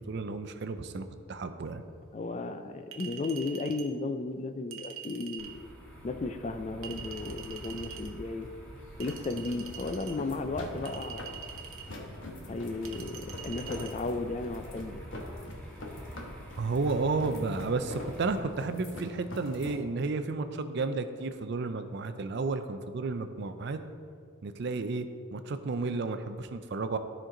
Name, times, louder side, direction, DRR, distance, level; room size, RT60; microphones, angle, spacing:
voice 1, 0.0-1.8 16.6-23.8 24.4-25.1 25.3-27.0, right 3 dB, 55° right, 9 dB, 0.4 m, -32 dB
voice 2, 2.1-5.7 6.0-8.5 9.0-11.3 12.5-15.0, left 3 dB, 35° left, 8 dB, 0.3 m, -34 dB
Chink clink, 2.9-3.9 4.7-5.6 6.8-8.1 9.0-10.2 10.9-11.9 12.9-13.9, right 8 dB, 90° right, 0.8 m, -44 dB
sound 1, 5.4-18.4, equal, 5° left, 1.3 m, -47 dB
sound 2, 6.4-19.8, left 1 dB, 60° left, 1.1 m, -44 dB
12.5 x 4.5 x 3.8 m, 2.2 s
head